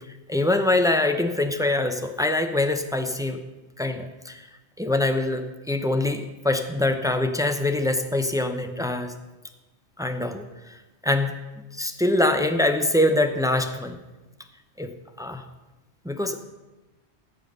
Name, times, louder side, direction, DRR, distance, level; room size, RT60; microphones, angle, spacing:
voice 1, 0.3-3.4 3.8-4.4 4.8-9.1 10.0-10.8 11.0-11.3 11.7-14.0 14.8-14.9 15.2-15.4 16.0-16.4, left 2 dB, 5° right, 6 dB, 0.5 m, -24 dB
14.5 x 5.7 x 6.6 m, 1.1 s
omnidirectional pair, 1.1 m